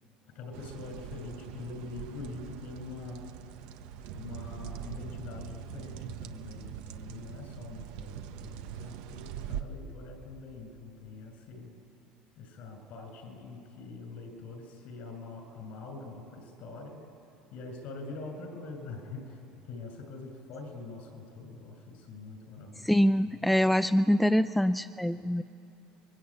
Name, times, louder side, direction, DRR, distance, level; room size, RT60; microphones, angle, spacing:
voice 1, 0.2-3.2 3.6-3.7 4.1-11.7 12.4-17.0 17.5-23.0 23.3-23.4, left 3 dB, 60° left, 6 dB, 7.1 m, -44 dB
sound 1, 0.5-9.6, right 10 dB, 80° right, 1.2 m, -42 dB
voice 2, 22.8-25.4, equal, 5° left, 11 dB, 0.5 m, -24 dB
28.0 x 22.5 x 8.9 m, 2.9 s
supercardioid pair, 115°, 3 cm